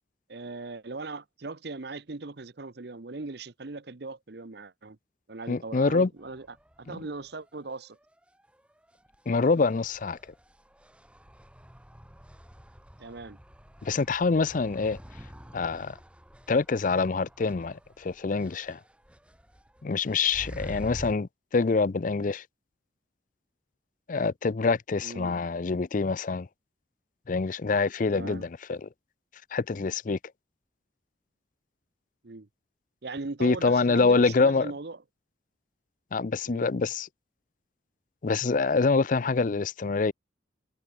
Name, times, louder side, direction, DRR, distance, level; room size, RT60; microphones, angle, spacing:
voice 1, 0.3-5.0 5.3-8.0 13.0-13.4 25.0-25.4 28.1-28.4 32.2-32.5 33.0-35.0 36.5-36.7, right 3 dB, 60° right, 0.9 m, -39 dB
voice 2, 5.5-6.1 9.3-10.2 13.8-15.0 15.5-16.0 16.5-18.8 19.8-22.4 24.1-26.5 27.3-28.9 29.5-30.2 33.4-34.7 36.1-37.1 38.2-40.1, left 4 dB, 45° left, 0.5 m, -25 dB
sound 1, 6.2-21.1, equal, 5° right, 4.7 m, -48 dB
head